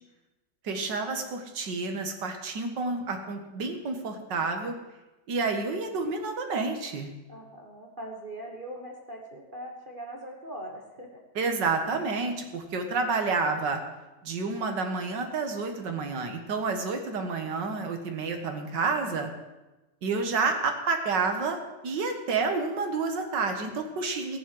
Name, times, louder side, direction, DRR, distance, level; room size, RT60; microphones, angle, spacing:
voice 1, 0.6-4.7 5.3-7.1 11.4-13.8 14.2-19.3 20.0-21.6 21.8-24.4, right 4 dB, 80° right, 5 dB, 2.1 m, -29 dB
voice 2, 7.3-11.2, right 1 dB, 30° right, 1 dB, 1.5 m, -41 dB
14.5 x 7.3 x 7.7 m, 1.1 s
omnidirectional pair, 1.9 m